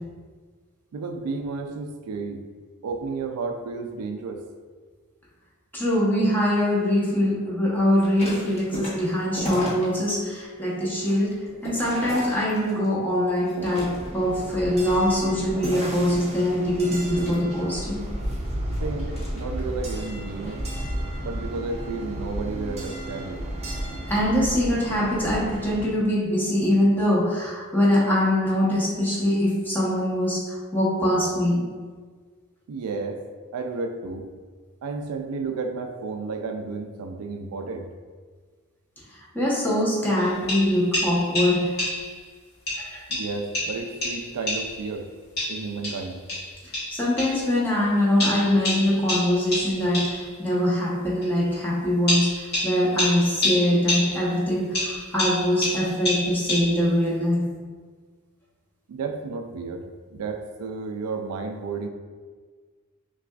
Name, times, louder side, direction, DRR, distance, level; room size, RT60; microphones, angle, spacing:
voice 1, 0.9-2.4 2.8-4.4 18.8-20.6 21.2-23.4 32.7-33.2 33.5-34.3 34.8-37.9 43.1-45.1 45.5-46.3 58.9-61.9, right 4 dB, 75° right, 5 dB, 0.4 m, -32 dB
voice 2, 5.7-11.3 11.6-18.0 24.1-31.6 39.1-41.9 42.8-43.0 46.9-57.4, left 1 dB, 10° left, -7 dB, 0.9 m, -23 dB
sound 1, 7.9-10.1 10.6-12.9 13.4-14.3 14.8-16.1 17.1-19.8 20.3-20.6, equal, 30° left, 1.0 m, -36 dB
sound 2, 13.8-25.9, right 1 dB, 30° right, 0.5 m, -33 dB
sound 3, 40.2-42.2 42.7-44.9 45.4-47.5 48.2-50.3 51.2-51.3 52.1-54.4 54.7-57.0, left 1 dB, 50° left, 1.3 m, -29 dB
5.7 x 2.3 x 2.3 m, 1.5 s
head